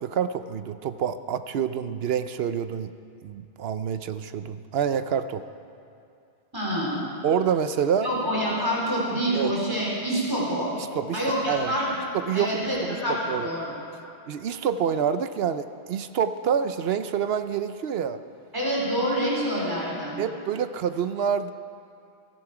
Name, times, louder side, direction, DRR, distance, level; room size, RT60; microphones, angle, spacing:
voice 1, 0.0-2.9 3.2-5.4 7.2-8.1 9.3-9.5 10.7-11.2 11.4-11.7 12.1-13.0 13.3-13.5 14.3-18.2 20.2-21.5, right 8 dB, 65° right, 11 dB, 0.8 m, -27 dB
voice 2, 6.5-7.0 8.0-10.7 11.1-11.9 12.3-13.7 18.5-20.2, equal, 20° right, -5 dB, 3.9 m, -26 dB
17.0 x 14.0 x 4.9 m, 2.5 s
omnidirectional pair, 1.1 m